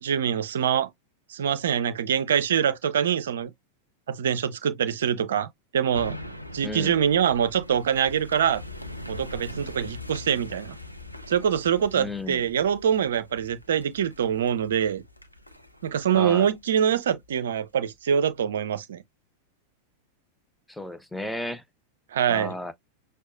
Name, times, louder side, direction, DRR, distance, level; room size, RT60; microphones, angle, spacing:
voice 1, 0.0-0.9 1.3-3.5 4.1-5.5 5.7-6.2 6.5-8.6 9.1-10.8 11.3-15.0 15.8-19.0 22.1-22.5, right 8 dB, 60° right, 0.5 m, -24 dB
sound 1, 5.9-17.4 17.8-17.9, left 1 dB, 90° left, 0.6 m, -42 dB
voice 2, 6.6-7.0 12.0-12.4 16.1-16.5 20.7-21.6 22.3-22.7, left 1 dB, 5° left, 0.6 m, -34 dB
6.2 x 2.1 x 2.5 m
figure-of-eight pair, 90°, 0 cm